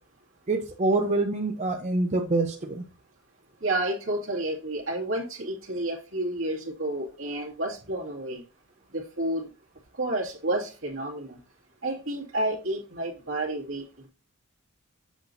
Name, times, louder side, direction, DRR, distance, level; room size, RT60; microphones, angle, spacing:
voice 1, 0.5-2.8, right 2 dB, 35° right, 2 dB, 0.6 m, -26 dB
voice 2, 3.6-8.4 8.9-9.5 10.0-11.4 11.8-14.1, right 1 dB, 65° right, -2 dB, 2.3 m, -30 dB
8.0 x 5.9 x 2.7 m, 0.33 s
head